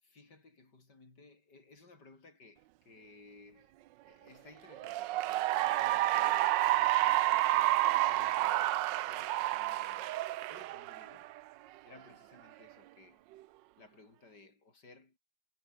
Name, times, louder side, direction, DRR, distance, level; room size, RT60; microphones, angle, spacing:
voice 1, 0.0-3.8 4.1-7.5 8.0-10.2 10.5-11.3 11.9-13.2 13.8-15.2, left 3 dB, 65° left, 5.6 m, -58 dB
Cheering / Applause, 4.7-11.4, right 16 dB, 85° right, 1.3 m, -29 dB
omnidirectional pair, 1.9 m